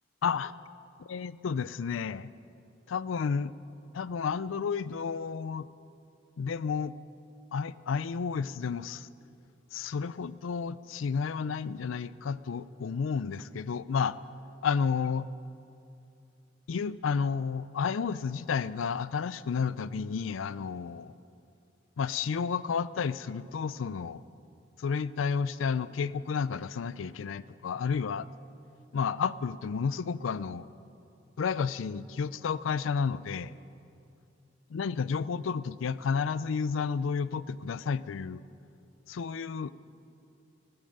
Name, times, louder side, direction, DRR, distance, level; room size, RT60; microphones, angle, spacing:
voice 1, 0.2-0.5 1.1-2.3 2.9-3.5 3.9-5.7 6.4-6.9 7.5-9.1 9.7-14.2 14.6-15.3 16.7-21.1 22.0-24.2 24.8-28.3 28.9-30.7 31.4-33.5 34.7-38.4 39.1-39.7, left 6 dB, 85° left, 17 dB, 0.4 m, -31 dB
15.5 x 9.7 x 7.9 m, 2.6 s
head